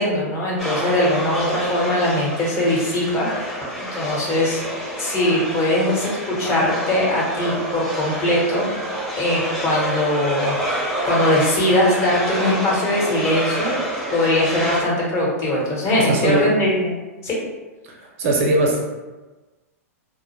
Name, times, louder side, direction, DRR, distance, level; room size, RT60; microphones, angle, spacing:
voice 1, 0.0-3.5 3.8-4.7 5.0-8.7 9.2-13.8 14.1-16.9 17.2-17.4, left 1 dB, 30° left, -5 dB, 1.0 m, -21 dB
sound 1, 0.6-14.8, right 1 dB, 5° left, 0.7 m, -28 dB
voice 2, 16.0-16.5 17.9-18.9, right 2 dB, 60° right, -1 dB, 0.6 m, -20 dB
2.1 x 2.0 x 3.0 m, 1.2 s
hypercardioid pair, 110°, 8 cm